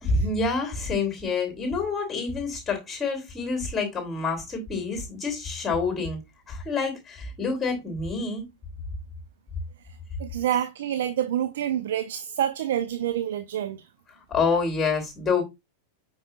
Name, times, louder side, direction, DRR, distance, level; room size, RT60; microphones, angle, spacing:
voice 1, 0.0-6.2 6.5-8.4 14.3-15.4, left 4 dB, 15° left, 3.2 m, -27 dB
voice 2, 10.2-13.9, right 10 dB, 60° right, 0.6 m, -27 dB
8.6 x 5.4 x 2.4 m
figure-of-eight pair, 90°, 0 cm